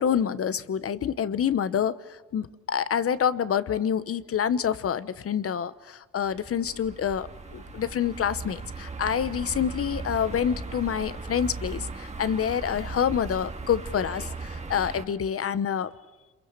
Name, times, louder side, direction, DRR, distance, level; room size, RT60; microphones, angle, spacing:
voice 1, 0.0-1.9 2.3-15.9, left 8 dB, 50° left, 15 dB, 1.0 m, -27 dB
sound 1, 6.2-15.0, right 4 dB, 25° right, 1.8 m, -38 dB
27.0 x 22.5 x 6.7 m, 1.2 s
cardioid pair, 90°, 30 cm